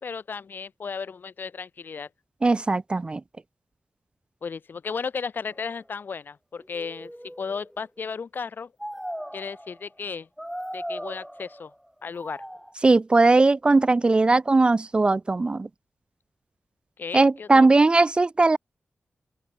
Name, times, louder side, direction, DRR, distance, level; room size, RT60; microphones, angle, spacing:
voice 1, 0.0-2.1 4.4-7.1 7.4-8.7 9.3-10.3 10.7-11.7 12.0-12.4 17.0-17.7, left 5 dB, 55° left, 5.8 m, -34 dB
voice 2, 2.4-3.2 12.8-15.7 17.1-18.6, right 3 dB, 25° right, 0.5 m, -19 dB
sound 1, 5.5-5.7 6.6-7.9 8.8-9.8 10.4-11.7 12.1-12.7, equal, ahead, 3.9 m, -38 dB
open air
wide cardioid pair, 170°, 4 cm